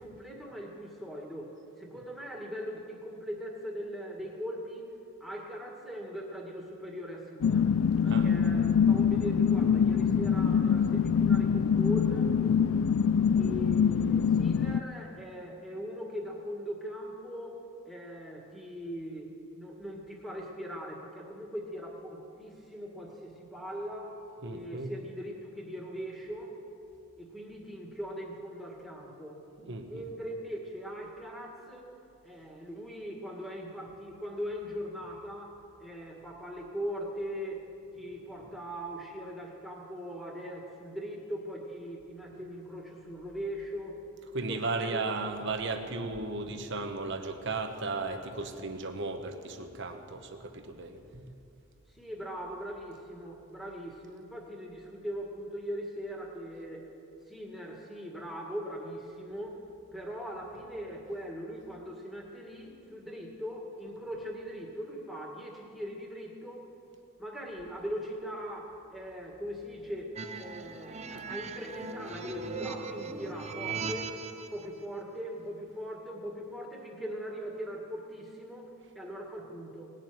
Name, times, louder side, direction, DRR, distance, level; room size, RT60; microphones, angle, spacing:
voice 1, 0.0-4.9 5.2-7.7 8.0-12.3 13.4-17.6 17.9-24.2 24.5-26.6 27.2-31.9 32.2-37.7 37.9-44.0 44.5-45.0 51.9-56.9 57.3-59.6 59.9-66.7 67.2-74.1 74.5-79.9, equal, ahead, -2 dB, 2.1 m, -40 dB
sound 1, 7.4-14.8, left 7 dB, 70° left, 0.4 m, -24 dB
voice 2, 24.4-24.9 29.6-30.1 38.4-38.6 44.3-51.4 71.1-71.3 73.8-73.9, right 3 dB, 55° right, 6 dB, 1.1 m, -36 dB
sound 2, 70.2-74.7, right 4 dB, 30° right, 0.6 m, -39 dB
19.0 x 7.5 x 9.3 m, 2.6 s
head